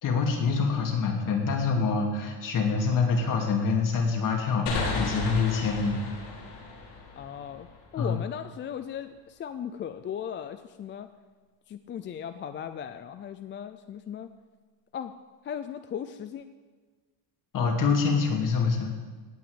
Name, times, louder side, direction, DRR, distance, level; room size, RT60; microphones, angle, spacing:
voice 1, 0.0-6.0 8.0-8.2 17.5-18.9, left 5 dB, 45° left, 1 dB, 2.7 m, -26 dB
sound 1, 4.7-8.1, left 3 dB, 65° left, 4.3 m, -34 dB
voice 2, 7.2-7.7 7.9-11.1 11.7-14.3 14.9-15.1 15.4-16.5, left 9 dB, 30° left, 10 dB, 0.4 m, -37 dB
18.0 x 6.0 x 8.8 m, 1.4 s
cardioid pair, 155°, 45 cm